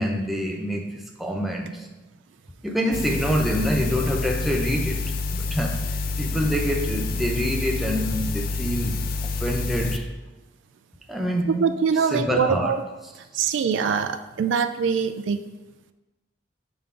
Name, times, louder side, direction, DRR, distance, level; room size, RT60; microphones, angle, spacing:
voice 1, 0.0-1.9 2.6-9.0 9.4-10.1 11.1-11.6 12.1-12.7, equal, ahead, 0 dB, 0.5 m, -26 dB
sound 1, 2.9-10.0, left 3 dB, 50° left, 0.4 m, -28 dB
voice 2, 11.5-12.8 13.3-15.4, right 6 dB, 75° right, 9 dB, 0.3 m, -23 dB
7.0 x 3.7 x 3.7 m, 1.1 s
head